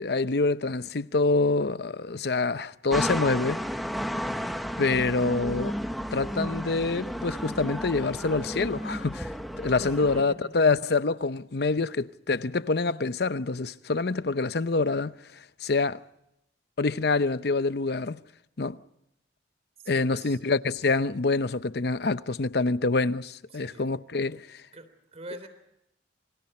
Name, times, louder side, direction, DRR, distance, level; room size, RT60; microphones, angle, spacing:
voice 1, 0.0-3.6 4.8-5.7 6.1-16.0 16.8-18.2 18.6-18.8 19.9-24.6, left 3 dB, 65° left, 0.7 m, -26 dB
sound 1, 2.9-10.2, equal, ahead, 1.2 m, -33 dB
voice 2, 9.7-10.5 19.8-20.4 23.5-23.9 24.7-25.5, right 1 dB, 35° right, 3.3 m, -44 dB
28.0 x 25.0 x 4.3 m
head